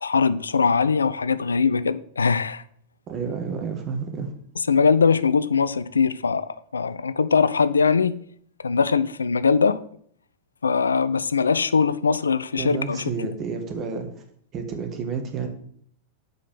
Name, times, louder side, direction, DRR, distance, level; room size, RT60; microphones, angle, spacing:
voice 1, 0.0-2.6 4.7-8.2 8.6-9.9 10.6-13.1, left 5 dB, 75° left, 0.4 m, -21 dB
voice 2, 3.1-4.3 12.6-14.2 14.5-15.5, right 5 dB, 30° right, 1.7 m, -30 dB
6.7 x 5.1 x 6.8 m
figure-of-eight pair, 90°, 0 cm